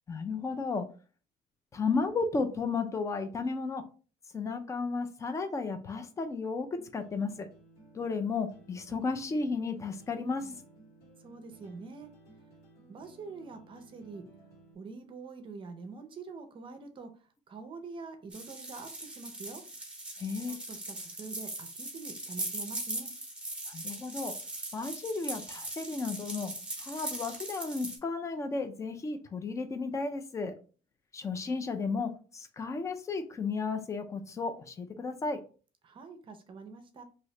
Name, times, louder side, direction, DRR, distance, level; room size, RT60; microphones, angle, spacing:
voice 1, 0.1-0.9 1.7-3.8 4.3-6.7 6.9-7.5 7.9-10.6 20.2-20.6 23.7-24.3 24.7-26.5 26.8-30.5 31.1-35.4, left 4 dB, 20° left, 8 dB, 0.4 m, -33 dB
sound 1, 6.8-14.8, right 2 dB, 85° left, 1.6 m, -57 dB
voice 2, 11.2-12.1 12.9-14.3 14.7-17.1 17.5-19.6 20.5-23.1 35.8-37.0, right 4 dB, 30° right, 7 dB, 0.6 m, -45 dB
sound 2, 18.3-28.0, right 2 dB, 5° right, 0.9 m, -40 dB
3.0 x 2.8 x 3.1 m, 0.38 s
cardioid pair, 150°, 16 cm